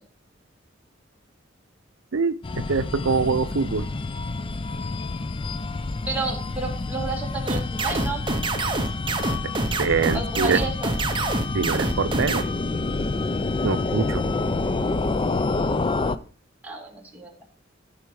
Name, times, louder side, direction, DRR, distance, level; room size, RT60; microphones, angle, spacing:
voice 1, 2.1-3.9 9.8-10.6 11.5-12.5 13.6-14.2, right 5 dB, 90° right, 14 dB, 0.6 m, -24 dB
sound 1, 2.4-16.2, left 3 dB, 25° left, 0.4 m, -28 dB
voice 2, 6.1-8.2 10.1-10.9 16.6-17.3, right 2 dB, 10° right, -1 dB, 2.1 m, -31 dB
sound 2, 7.5-12.4, right 3 dB, 25° right, 0.7 m, -26 dB
13.0 x 5.2 x 4.7 m, 0.39 s
head